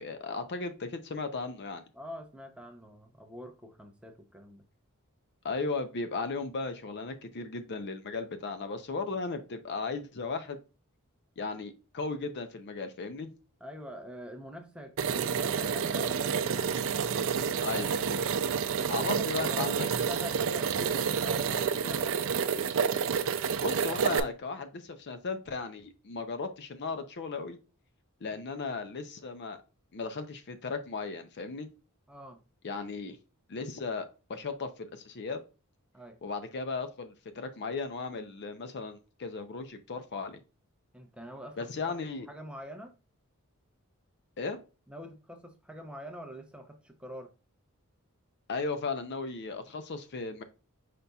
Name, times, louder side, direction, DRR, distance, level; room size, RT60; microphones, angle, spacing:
voice 1, 0.0-1.8 5.4-10.6 11.4-13.3 17.6-18.0 18.9-19.9 23.6-27.6 28.2-29.6 29.9-31.7 32.6-33.2 33.5-35.4 36.2-40.4 41.6-42.3 44.4-44.6 48.5-50.4, left 4 dB, 50° left, 0.5 m, -36 dB
voice 2, 1.9-4.6 13.6-16.7 18.8-22.3 32.1-32.4 35.9-36.2 40.9-41.9 42.3-42.9 44.9-47.3, equal, 5° right, 0.6 m, -45 dB
sound 1, 15.0-24.2, right 6 dB, 65° right, 0.4 m, -29 dB
5.2 x 4.1 x 2.3 m
head